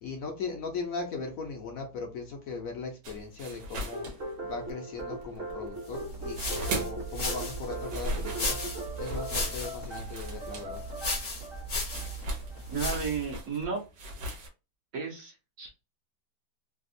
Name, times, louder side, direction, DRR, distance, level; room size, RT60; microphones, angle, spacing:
voice 1, 0.0-4.1 4.4-8.6 8.9-10.8, left 4 dB, 65° left, 2 dB, 1.0 m, -38 dB
sound 1, 3.0-4.8 5.1-7.1 7.5-14.5, right 1 dB, 85° right, 1.5 m, -39 dB
sound 2, 3.9-13.7, right 1 dB, 40° right, 1.0 m, -40 dB
sound 3, 5.9-13.3, left 1 dB, 40° left, 0.8 m, -36 dB
voice 2, 12.7-13.8 14.9-15.7, right 5 dB, 60° right, -1 dB, 1.2 m, -33 dB
3.4 x 2.3 x 2.6 m, 0.29 s
omnidirectional pair, 1.8 m